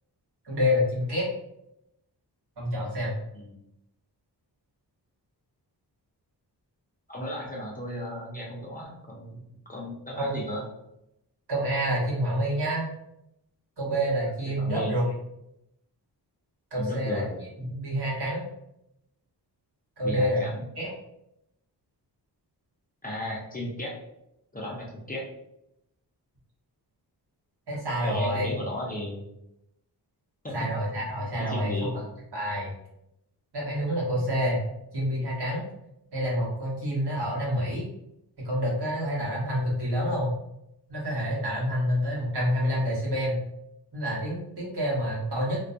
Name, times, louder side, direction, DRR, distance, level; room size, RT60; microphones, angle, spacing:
voice 1, 0.4-1.3 2.6-3.1 10.2-10.3 11.5-12.9 13.8-15.1 16.7-17.2 17.6-18.4 20.0-20.4 20.8-20.9 27.7-28.5 30.5-32.0 32.3-32.7 33.5-34.6 34.9-35.6 36.1-37.8 38.4-40.4 40.9-43.4 43.9-45.6, equal, 70° right, -5 dB, 1.1 m, -28 dB
voice 2, 7.1-9.4 9.7-10.6 14.6-14.9 16.8-17.4 20.0-20.6 23.0-24.0 24.5-25.3 28.0-29.2 30.4-30.7 31.1-31.9, left 1 dB, 20° left, -4 dB, 0.4 m, -35 dB
2.2 x 2.2 x 2.5 m, 0.84 s
wide cardioid pair, 125°, 42 cm